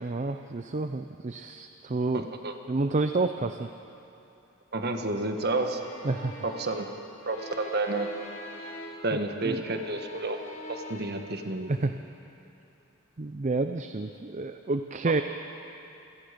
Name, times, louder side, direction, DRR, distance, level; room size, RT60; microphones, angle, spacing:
voice 1, 0.0-2.2 2.7-3.7 6.0-6.4 9.1-9.6 11.7-11.9 13.2-15.2, right 3 dB, 35° right, 8 dB, 0.5 m, -29 dB
voice 2, 2.1-2.5 4.7-5.8 6.4-6.9 7.3-8.1 9.0-10.4 10.7-11.7 15.0-15.2, right 2 dB, 50° right, 5 dB, 1.5 m, -30 dB
sound 1, 5.3-9.2 9.5-11.1, left 1 dB, 35° left, 3.5 m, -43 dB
27.5 x 18.0 x 5.2 m, 2.8 s
head